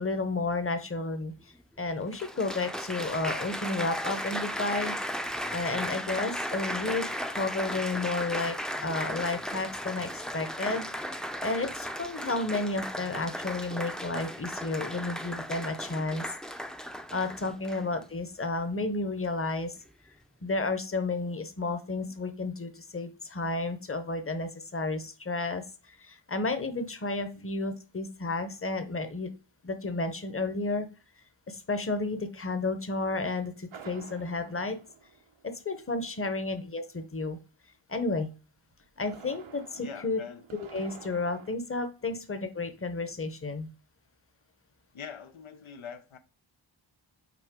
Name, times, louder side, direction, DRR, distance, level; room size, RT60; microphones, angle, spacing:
voice 1, 0.0-1.3 1.8-5.0 5.5-10.9 11.4-16.3 17.1-19.8 20.4-29.3 29.6-30.9 31.5-34.8 35.4-37.4 37.9-38.3 39.0-40.2 40.6-43.7, left 3 dB, 30° left, 0.9 m, -32 dB
Applause, 1.4-1.5 2.1-18.0 18.8-19.1, equal, ahead, 0.5 m, -36 dB
sound 1, 33.7-35.8 38.7-41.5, right 6 dB, 85° right, 0.8 m, -50 dB
voice 2, 39.7-40.5 42.0-42.2 44.9-46.2, left 6 dB, 90° left, 0.7 m, -44 dB
5.9 x 4.4 x 3.6 m
wide cardioid pair, 65°, 47 cm